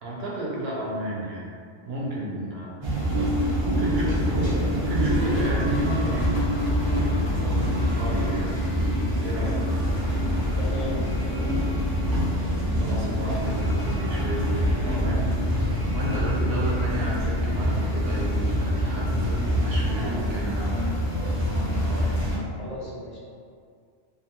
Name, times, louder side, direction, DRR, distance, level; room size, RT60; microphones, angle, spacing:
voice 1, 0.0-1.5 1.8-2.8 3.1-6.3 7.8-8.5 9.2-9.6 12.8-15.3 15.9-20.9 21.7-22.1, right 1 dB, 65° right, -5 dB, 0.8 m, -32 dB
sound 1, 2.8-22.4, equal, 45° right, 0.3 m, -25 dB
sound 2, 3.3-10.1 10.4-11.9 12.9-13.3 13.5-13.9 15.4-15.7 16.0-16.3 17.9-18.0, left 1 dB, 65° left, 0.9 m, -36 dB
sound 3, 6.5-18.4, left 2 dB, 15° left, 0.6 m, -41 dB
voice 2, 10.5-11.6 22.6-23.2, left 1 dB, 85° left, -6 dB, 1.1 m, -37 dB
2.6 x 2.2 x 2.8 m, 2.2 s
omnidirectional pair, 1.2 m